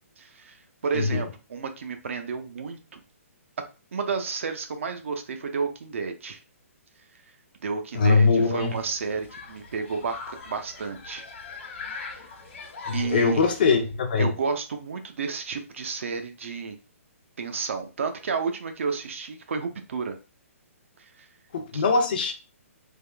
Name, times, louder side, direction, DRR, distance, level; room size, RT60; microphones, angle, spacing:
voice 1, 0.2-3.0 3.9-6.4 7.6-11.3 11.8-12.3 12.9-13.4 14.2-16.8 17.4-20.2 21.0-21.3 21.7-21.8, right 5 dB, 60° right, 0.6 m, -31 dB
voice 2, 7.9-8.7 12.9-14.3 21.5-22.3, left 4 dB, 35° left, 0.6 m, -22 dB
Human group actions, 8.6-13.6, left 4 dB, 55° left, 1.2 m, -41 dB
3.5 x 2.3 x 3.3 m
hypercardioid pair, 175°, 8 cm